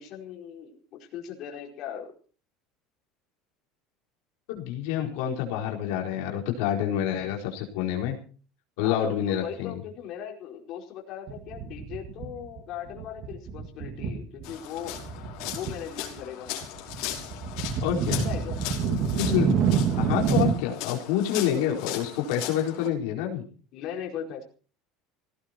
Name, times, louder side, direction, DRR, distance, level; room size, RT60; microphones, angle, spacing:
voice 1, 0.0-2.1 8.8-15.0 15.5-16.7 18.1-18.6 23.7-24.4, left 9 dB, 45° left, 0 dB, 4.8 m, -38 dB
voice 2, 4.5-8.2 8.8-9.8 17.8-18.2 18.9-19.5 20.0-23.4, left 10 dB, 75° left, 1 dB, 4.3 m, -28 dB
sound 1, 11.3-12.6 12.9-14.5 14.8-15.8 16.0-20.5, right 6 dB, 40° right, 2.2 m, -28 dB
sound 2, 14.4-22.9, left 12 dB, 60° left, 5.4 m, -38 dB
17.5 x 17.0 x 4.5 m, 0.40 s
cardioid pair, 165°, 0 cm